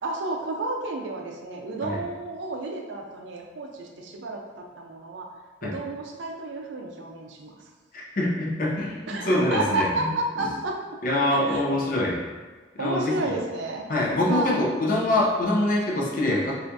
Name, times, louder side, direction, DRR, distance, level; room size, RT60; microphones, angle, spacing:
voice 1, 0.0-5.3 5.6-7.6 9.1-10.8 11.3-11.7 12.8-13.8 14.3-14.6, right 2 dB, 75° right, 1 dB, 0.4 m, -31 dB
voice 2, 7.9-10.1 10.4-10.5 11.0-12.2 12.8-13.3 13.9-16.5, left 1 dB, 45° left, -3 dB, 0.5 m, -24 dB
3.3 x 2.5 x 2.6 m, 1.3 s
head